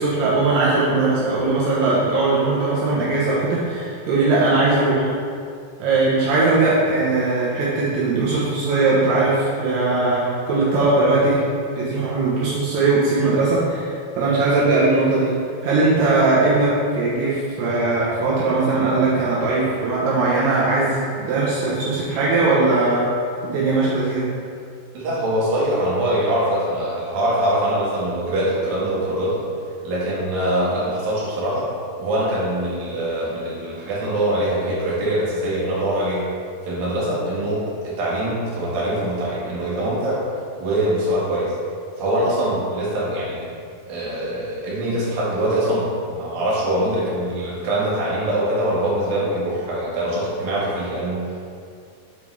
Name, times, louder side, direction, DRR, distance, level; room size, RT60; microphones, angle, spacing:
voice 1, 0.0-5.1 5.8-11.5 11.8-15.3 15.6-23.0 23.4-24.3, right 3 dB, 80° right, -8 dB, 3.1 m, -19 dB
voice 2, 24.9-29.5 29.8-31.7 32.0-36.3 36.6-40.3 40.6-41.5 42.0-43.5 43.9-51.4, right 1 dB, 65° right, -7 dB, 3.2 m, -23 dB
7.4 x 5.3 x 3.3 m, 2.3 s
omnidirectional pair, 4.7 m